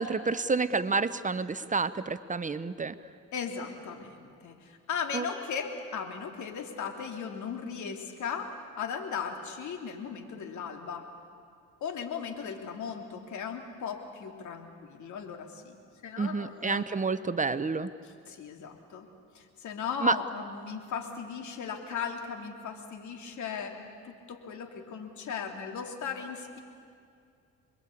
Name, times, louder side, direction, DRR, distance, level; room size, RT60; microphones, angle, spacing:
voice 1, 0.0-2.9 5.1-5.3 16.2-17.9 20.0-20.2, right 4 dB, 25° right, 13 dB, 0.8 m, -29 dB
voice 2, 3.3-11.1 11.8-15.7 16.0-16.8 18.0-19.1 19.3-26.6, left 6 dB, 70° left, 4 dB, 3.0 m, -37 dB
27.0 x 22.5 x 8.5 m, 2.4 s
cardioid pair, 90°, 30 cm